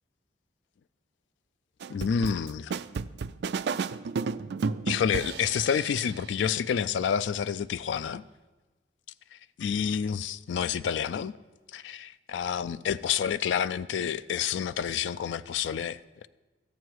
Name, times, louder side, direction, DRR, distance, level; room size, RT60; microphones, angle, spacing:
sound 1, 1.8-6.1, right 5 dB, 65° right, 0.4 m, -32 dB
voice 1, 1.9-2.7 4.9-8.2 9.6-11.3 11.7-16.3, left 7 dB, 80° left, 0.3 m, -29 dB
13.5 x 9.3 x 4.7 m
head